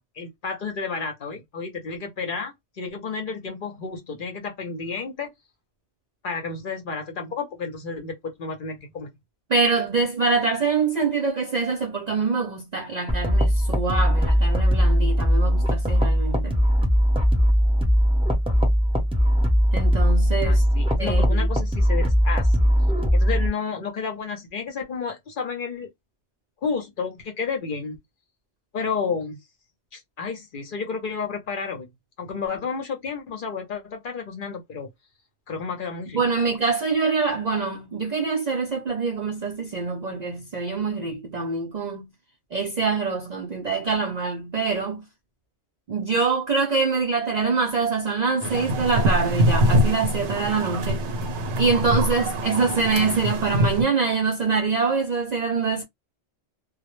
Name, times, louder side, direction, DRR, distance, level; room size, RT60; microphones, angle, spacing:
voice 1, 0.2-5.3 6.2-9.1 20.4-22.6 23.1-25.9 26.6-28.0 28.7-29.4 29.9-31.9 32.2-34.9 35.5-36.5, left 5 dB, 55° left, 0.7 m, -31 dB
voice 2, 9.5-16.5 19.7-20.6 21.0-21.5 36.1-42.1 42.5-45.0 45.9-51.0 51.6-55.8, right 4 dB, 55° right, 0.4 m, -25 dB
sound 1, 13.1-23.5, equal, 5° right, 0.6 m, -20 dB
sound 2, 48.4-53.8, equal, 75° right, 0.9 m, -24 dB
2.1 x 2.0 x 2.9 m
omnidirectional pair, 1.2 m